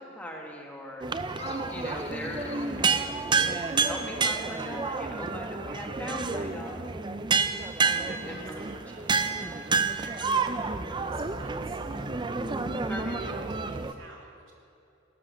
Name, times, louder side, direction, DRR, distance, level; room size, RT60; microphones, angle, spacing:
voice 1, 0.0-2.5 3.1-3.5 3.8-7.1 7.8-8.7 9.1-9.4 11.9-12.1 12.3-13.5, equal, 10° left, -1 dB, 1.6 m, -40 dB
sound 1, 1.0-13.9, right 4 dB, 25° right, 0.5 m, -29 dB
sound 2, 1.3-3.8, left 5 dB, 30° left, 0.6 m, -46 dB
voice 2, 2.6-3.0 8.2-12.3 13.1-14.5, right 3 dB, 85° right, -3 dB, 3.0 m, -52 dB
18.0 x 8.2 x 6.3 m, 2.7 s
head